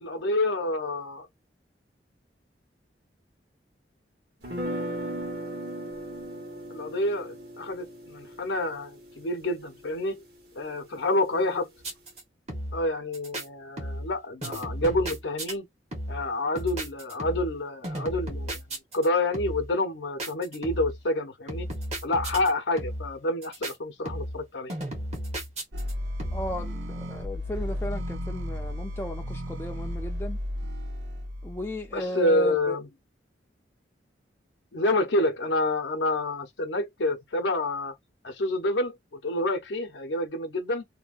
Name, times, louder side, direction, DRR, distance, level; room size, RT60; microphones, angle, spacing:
voice 1, 0.0-1.3 6.7-10.2 10.5-11.7 12.7-15.7 16.1-18.6 18.9-21.7 22.0-24.7 31.9-32.9 34.7-37.9 38.2-40.8, left 2 dB, 80° left, 0.7 m, -28 dB
sound 1, 4.4-10.4, right 1 dB, 55° right, 1.3 m, -37 dB
sound 2, 11.8-12.2 12.5-12.9 13.1-13.4 13.8-14.2 14.4-15.5 15.9-16.3 16.6-17.6 17.8-19.1 19.3-19.7 20.2-21.0 21.5-22.5 22.8-23.2 23.4-23.7 24.1-24.4 24.7-25.9 26.2-26.6, right 1 dB, 35° right, 1.1 m, -34 dB
sound 3, 25.7-31.9, equal, 85° right, 0.7 m, -34 dB
voice 2, 26.3-30.4 31.4-32.8, equal, 15° left, 0.4 m, -35 dB
2.8 x 2.2 x 2.5 m
head